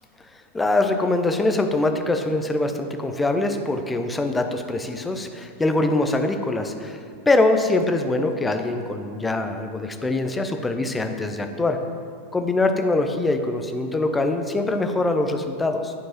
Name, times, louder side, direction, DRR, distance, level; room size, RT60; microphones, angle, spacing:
voice 1, 0.5-7.0 7.3-11.8 12.3-15.9, left 2 dB, 10° left, 6 dB, 0.5 m, -23 dB
11.0 x 4.5 x 2.9 m, 2.4 s
figure-of-eight pair, 90°, 0 cm